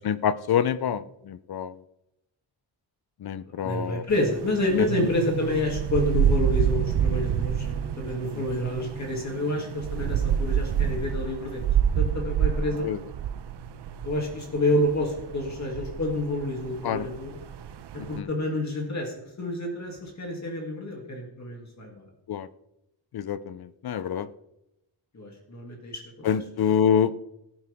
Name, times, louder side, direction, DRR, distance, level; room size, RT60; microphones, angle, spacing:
voice 1, 0.0-1.7 3.2-4.0 12.8-13.0 16.8-17.0 18.2-18.3 22.3-22.5 23.1-24.3 26.2-27.1, left 8 dB, 55° left, 15 dB, 0.7 m, -26 dB
voice 2, 3.6-11.7 12.0-12.9 14.0-17.4 17.9-22.0 25.1-26.0 26.3-26.4, left 1 dB, 35° left, 0 dB, 2.7 m, -28 dB
sound 1, 4.1-18.2, right 9 dB, 65° right, 0.8 m, -28 dB
18.0 x 10.0 x 3.6 m, 0.85 s
wide cardioid pair, 180°, 45 cm